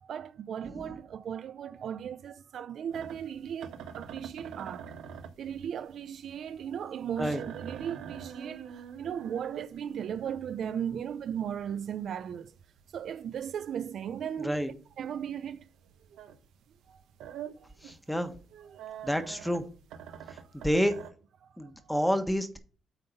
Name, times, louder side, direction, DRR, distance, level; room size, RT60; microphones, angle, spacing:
voice 1, 0.0-5.0 5.4-12.5 12.9-14.6 15.0-15.7 16.9-17.0 17.6-17.7 18.9-19.1 21.4-21.5 21.8-22.0, right 8 dB, 65° right, 0.5 m, -37 dB
sound 1, 2.9-16.5 16.8-21.1, right 8 dB, 85° right, 1.0 m, -45 dB
voice 2, 17.8-18.3 19.0-19.6 20.5-20.9 21.6-22.6, equal, 5° left, 1.4 m, -28 dB
9.0 x 3.8 x 5.6 m
cardioid pair, 90°, 0 cm